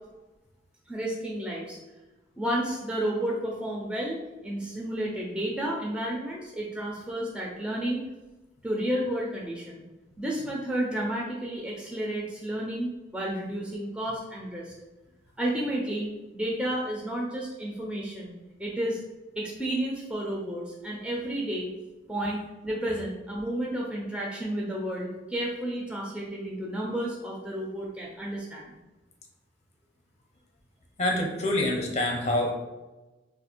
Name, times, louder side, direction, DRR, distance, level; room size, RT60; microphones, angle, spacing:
voice 1, 0.9-1.8 2.4-8.0 8.6-9.8 10.2-14.7 15.4-16.1 16.3-18.3 18.6-19.0 19.4-21.7 22.1-28.7, right 1 dB, 5° right, -3 dB, 0.4 m, -31 dB
voice 2, 31.0-32.5, left 1 dB, 35° left, 1 dB, 0.6 m, -26 dB
2.8 x 2.5 x 4.2 m, 1.1 s
head